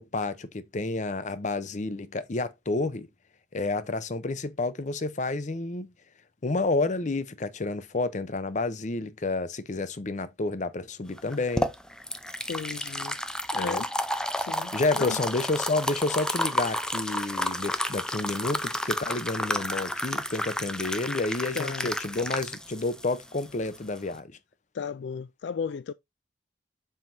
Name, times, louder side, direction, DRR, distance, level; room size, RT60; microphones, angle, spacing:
voice 1, 0.0-3.1 3.5-5.9 6.4-11.7 13.5-13.8 14.7-24.3, left 3 dB, 45° left, 0.7 m, -30 dB
sound 1, 11.2-24.2, left 1 dB, 5° left, 0.6 m, -31 dB
voice 2, 12.5-13.2 13.5-13.9 14.4-15.2 21.5-21.9 24.7-25.9, left 6 dB, 75° left, 0.3 m, -34 dB
7.5 x 5.7 x 2.7 m
head